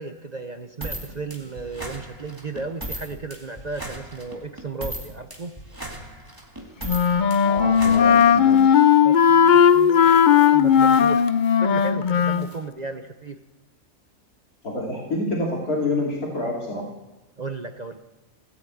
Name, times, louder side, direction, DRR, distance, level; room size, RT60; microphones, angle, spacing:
voice 1, 0.0-5.5 9.0-11.2 11.6-13.4 17.4-18.0, right 3 dB, 35° right, 7 dB, 0.7 m, -34 dB
sound 1, 0.8-8.7, right 1 dB, 15° right, 2.0 m, -37 dB
Wind instrument woodwind instrument, 6.9-12.5, left 8 dB, 65° left, 0.4 m, -16 dB
voice 2, 7.4-8.7 14.6-16.8, left 1 dB, 85° left, -3 dB, 3.3 m, -27 dB
17.0 x 9.1 x 8.4 m, 1.1 s
omnidirectional pair, 1.5 m